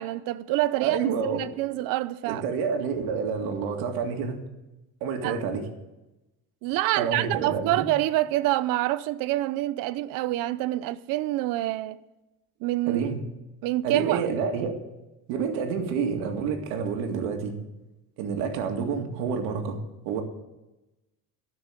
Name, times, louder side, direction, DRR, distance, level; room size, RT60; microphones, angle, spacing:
voice 1, 0.0-2.4 5.2-5.4 6.6-12.0 12.6-13.0 13.6-14.3, right 16 dB, 65° right, 0.7 m, -27 dB
voice 2, 0.8-1.4 2.3-4.4 5.0-5.6 7.0-7.9 12.9-13.2 13.8-14.7 15.3-17.6 18.2-19.8 20.1-20.2, right 6 dB, 85° right, 2.1 m, -28 dB
14.5 x 6.1 x 8.9 m
cardioid pair, 165°, 36 cm